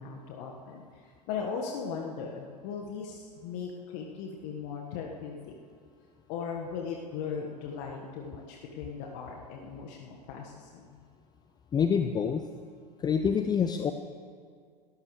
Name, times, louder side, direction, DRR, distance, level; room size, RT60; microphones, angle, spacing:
voice 1, 0.0-5.3 6.3-10.9, left 6 dB, 50° left, 0 dB, 1.6 m, -38 dB
voice 2, 11.7-12.5 13.0-13.9, left 7 dB, 20° left, 8 dB, 0.6 m, -26 dB
29.0 x 14.0 x 3.3 m, 2.1 s
figure-of-eight pair, 85°, 21 cm